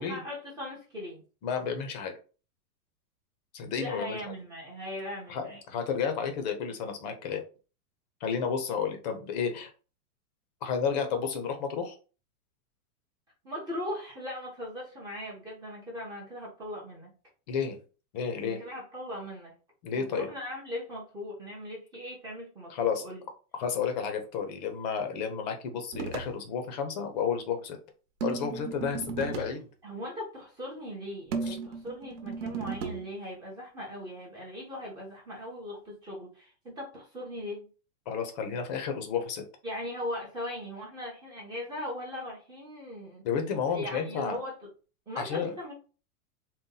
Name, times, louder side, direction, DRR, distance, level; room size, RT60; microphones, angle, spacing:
voice 1, 0.0-1.2 3.7-5.6 13.4-17.1 18.4-19.5 19.9-23.2 29.8-37.7 39.6-43.2 43.7-44.5 45.1-45.7, left 1 dB, 10° right, -4 dB, 0.6 m, -39 dB
voice 2, 1.4-2.1 3.5-4.2 5.3-7.4 8.2-9.7 10.6-12.0 17.5-17.8 18.1-18.6 19.8-20.3 22.7-23.0 23.5-27.8 28.2-29.7 31.4-31.6 38.1-39.4 43.2-44.4 45.2-45.5, left 6 dB, 30° left, 6 dB, 0.6 m, -31 dB
sound 1, 25.9-26.4 28.2-29.6 31.3-33.1, right 5 dB, 55° right, 1.0 m, -35 dB
4.1 x 2.2 x 3.8 m, 0.34 s
supercardioid pair, 175°, 45 cm